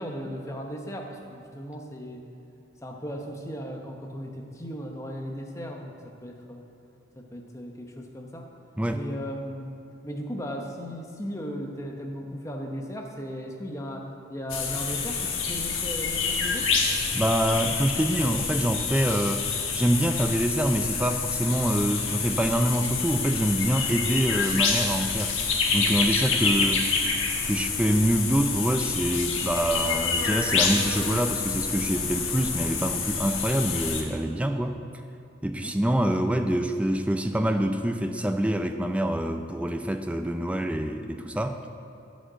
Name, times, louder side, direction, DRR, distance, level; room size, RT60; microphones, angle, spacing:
voice 1, 0.0-2.3 2.8-6.7 7.2-8.5 8.9-9.7 10.0-16.7 35.5-35.7, equal, 15° left, 2 dB, 0.8 m, -36 dB
sound 1, 14.5-34.0, left 5 dB, 75° left, 1.2 m, -27 dB
voice 2, 17.1-19.4 19.7-25.3 25.7-26.9 27.4-34.8 35.4-41.6, right 1 dB, 5° right, 6 dB, 0.4 m, -25 dB
10.0 x 5.2 x 7.9 m, 2.6 s
head